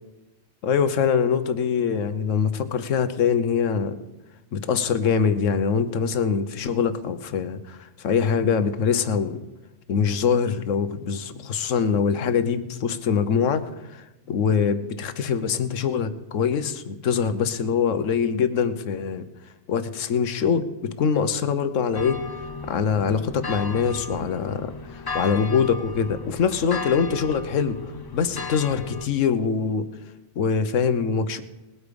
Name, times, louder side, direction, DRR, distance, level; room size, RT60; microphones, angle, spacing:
voice 1, 0.6-4.0 4.5-9.4 9.9-13.6 14.3-19.3 19.7-22.2 22.7-27.8 28.1-29.9 30.4-31.4, left 6 dB, 90° left, 11 dB, 1.2 m, -23 dB
sound 1, 21.9-29.1, left 3 dB, 40° left, 0.3 m, -35 dB
19.5 x 8.3 x 5.2 m, 1.0 s
omnidirectional pair, 1.3 m